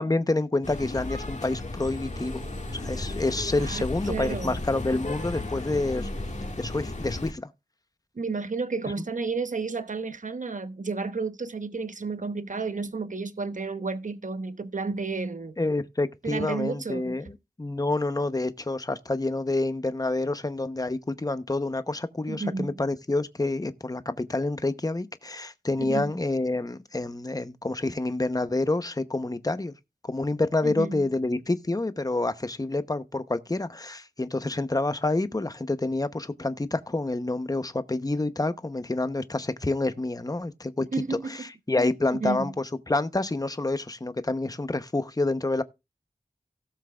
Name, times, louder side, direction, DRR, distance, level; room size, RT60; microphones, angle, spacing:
voice 1, 0.0-2.5 2.7-6.1 6.6-7.5 15.6-29.7 30.1-45.6, left 2 dB, 25° left, 0.8 m, -28 dB
sound 1, 0.6-7.3, left 2 dB, 50° left, 1.8 m, -34 dB
voice 2, 3.6-4.6 8.2-15.6 16.2-17.1 22.3-22.7 25.8-26.1 30.6-31.0 40.9-41.4 42.1-42.5, right 4 dB, 55° right, 1.0 m, -32 dB
17.5 x 7.3 x 2.4 m
wide cardioid pair, 75°, 16 cm